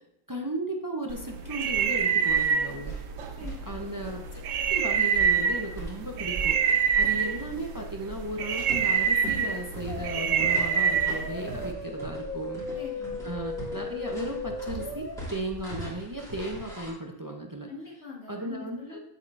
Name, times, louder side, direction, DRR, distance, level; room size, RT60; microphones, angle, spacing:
voice 1, 0.3-3.0 3.7-4.4 4.7-6.6 7.0-12.6 13.2-17.7 18.3-19.0, right 1 dB, 30° right, 2 dB, 0.4 m, -35 dB
sound 1, 1.1-11.7, right 7 dB, 70° right, 0.9 m, -27 dB
sound 2, 1.7-16.9, right 1 dB, ahead, 2.6 m, -41 dB
voice 2, 3.3-3.9 12.7-13.3 17.7-19.0, left 4 dB, 50° left, -4 dB, 2.2 m, -43 dB
sound 3, 9.9-15.2, left 3 dB, 85° left, 1.7 m, -37 dB
8.1 x 7.4 x 2.6 m, 0.82 s
omnidirectional pair, 1.5 m